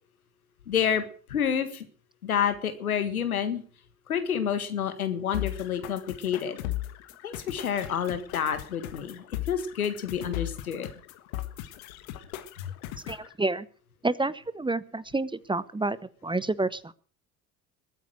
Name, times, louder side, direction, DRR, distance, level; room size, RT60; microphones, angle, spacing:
voice 1, 0.7-1.0 1.3-1.9 2.2-3.6 4.1-6.6 7.2-10.9, left 8 dB, 90° left, 10 dB, 1.7 m, -29 dB
sound 1, 5.3-13.3, left 14 dB, 75° left, 1.6 m, -38 dB
voice 2, 13.1-13.7 14.0-16.0 16.2-16.9, right 2 dB, 10° right, 18 dB, 0.9 m, -29 dB
21.0 x 9.3 x 6.4 m, 0.43 s
hypercardioid pair, 60°, 42 cm